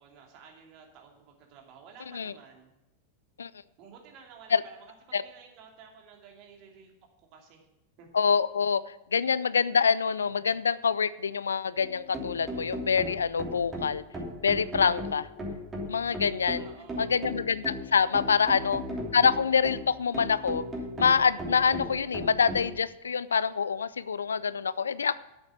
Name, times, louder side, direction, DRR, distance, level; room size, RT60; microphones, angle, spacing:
voice 1, 0.0-2.7 3.8-6.9 7.2-7.7 8.0-8.1 16.5-17.4 18.3-18.7, right 6 dB, 40° right, 1 dB, 2.8 m, -52 dB
voice 2, 8.1-8.8 9.1-14.0 14.4-15.3 15.9-16.7 17.0-18.8 19.1-20.6 21.0-25.1, left 6 dB, 70° left, 18 dB, 0.4 m, -26 dB
sound 1, 11.8-22.7, equal, 20° right, 3.0 m, -37 dB
9.1 x 8.0 x 8.3 m, 0.91 s
figure-of-eight pair, 90°, 0 cm